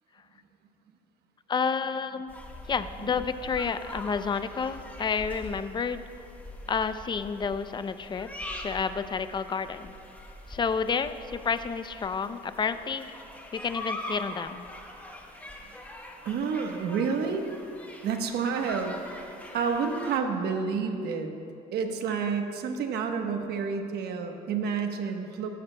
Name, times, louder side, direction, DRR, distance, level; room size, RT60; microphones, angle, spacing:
voice 1, 1.5-2.3 2.7-6.0 6.7-8.3 8.5-10.0 10.5-13.1 13.5-14.7, left 5 dB, 25° left, 11 dB, 0.5 m, -30 dB
sound 1, 2.3-20.2, left 1 dB, 10° left, 1.2 m, -43 dB
voice 2, 16.2-17.5 18.0-19.3 19.5-21.3 21.7-25.5, right 5 dB, 75° right, 4 dB, 1.1 m, -29 dB
16.0 x 13.5 x 2.2 m, 2.6 s
cardioid pair, 110°, 17 cm